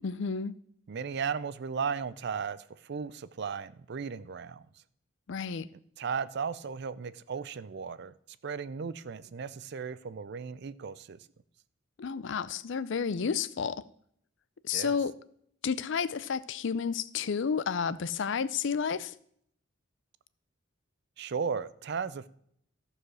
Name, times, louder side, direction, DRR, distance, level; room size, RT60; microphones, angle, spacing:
voice 1, 0.0-0.6 5.3-5.7 12.0-13.8 14.6-15.1 15.6-19.1, left 6 dB, 65° left, 0.5 m, -31 dB
voice 2, 0.9-4.7 6.0-8.1 8.4-11.2 14.7-15.0 21.2-22.3, right 6 dB, 55° right, 0.5 m, -35 dB
14.0 x 4.9 x 6.2 m
head